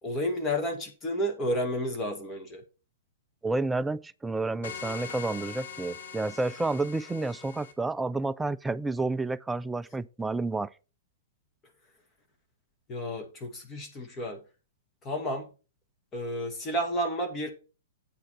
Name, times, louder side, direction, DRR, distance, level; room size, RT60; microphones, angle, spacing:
voice 1, 0.0-2.6 12.9-14.4 15.0-15.5 16.1-17.5, equal, 20° left, 2.0 m, -31 dB
voice 2, 3.4-10.7, right 3 dB, 5° right, 0.4 m, -30 dB
sound 1, 4.6-7.7, left 7 dB, 60° left, 1.3 m, -42 dB
8.4 x 4.6 x 5.9 m
figure-of-eight pair, 105°, 0 cm